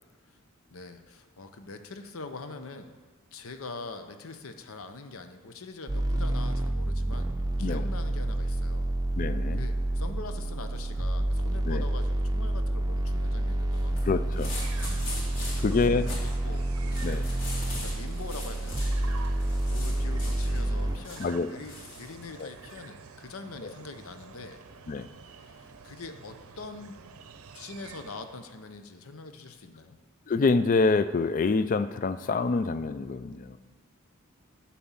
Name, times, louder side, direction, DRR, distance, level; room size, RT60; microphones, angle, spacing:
voice 1, 0.7-2.9 3.3-7.3 7.6-8.9 9.6-14.1 15.4-17.0 17.8-24.6 25.2-27.0 27.5-30.0, left 3 dB, 75° left, 8 dB, 0.8 m, -43 dB
sound 1, 5.9-21.0, right 1 dB, 20° right, 0.6 m, -29 dB
voice 2, 9.2-9.6 11.7-11.8 14.0-14.5 15.6-16.0 17.0-17.2 21.2-21.5 22.4-22.5 23.6-23.7 24.9-25.1 30.3-33.6, left 4 dB, 40° left, 12 dB, 0.3 m, -26 dB
sound 2, 13.7-22.8, left 2 dB, 60° left, 3.0 m, -42 dB
sound 3, 14.3-28.6, right 5 dB, 85° right, 0.6 m, -49 dB
11.0 x 4.3 x 7.1 m, 1.4 s
head